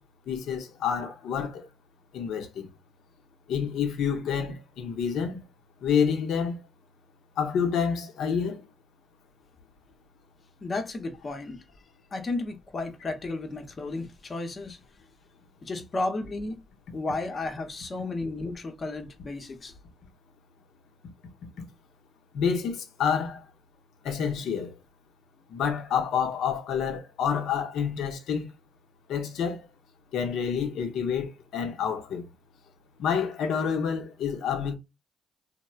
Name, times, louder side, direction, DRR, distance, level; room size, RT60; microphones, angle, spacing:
voice 1, 0.3-1.6 2.1-2.7 3.5-5.4 5.8-6.6 7.4-8.6 22.3-23.4 24.0-24.7 25.5-28.5 29.1-29.6 30.1-32.2 33.0-34.7, left 7 dB, 75° left, 0.7 m, -28 dB
voice 2, 10.6-11.6 12.1-14.8 15.6-16.6 16.9-19.7, left 2 dB, 40° left, 0.8 m, -33 dB
3.0 x 2.1 x 2.3 m
supercardioid pair, 60°, 0 cm